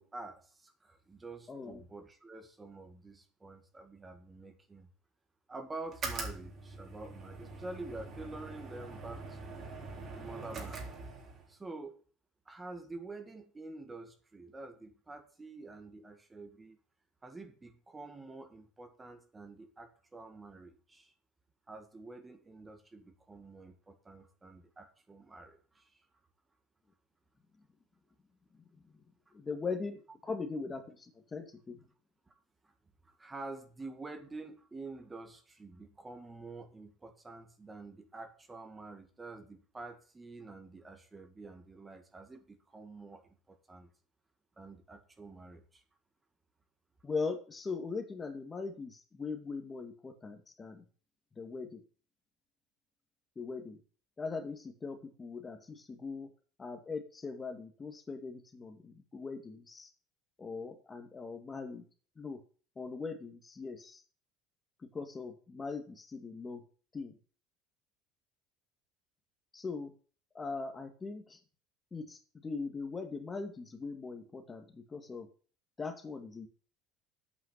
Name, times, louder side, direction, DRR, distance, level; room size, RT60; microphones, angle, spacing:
voice 1, 0.0-4.9 5.5-9.6 10.1-10.9 11.5-12.0 12.5-16.8 17.2-21.1 21.7-26.0 32.3-32.4 32.6-32.7 33.0-43.9 44.6-45.8, right 3 dB, 20° right, 6 dB, 1.8 m, -48 dB
voice 2, 1.5-1.8 28.5-28.6 29.3-31.8 47.0-50.8 51.4-51.8 53.4-53.8 54.2-56.3 56.6-59.9 60.4-61.8 62.2-62.4 62.8-64.0 64.8-66.6 66.9-67.2 69.5-69.9 70.3-71.4 71.9-75.3 75.8-76.5, left 4 dB, 25° left, 6 dB, 2.2 m, -40 dB
sound 1, 5.9-11.5, right 3 dB, 45° right, 3.7 m, -43 dB
8.8 x 5.7 x 8.2 m, 0.40 s
hypercardioid pair, 80°, 0 cm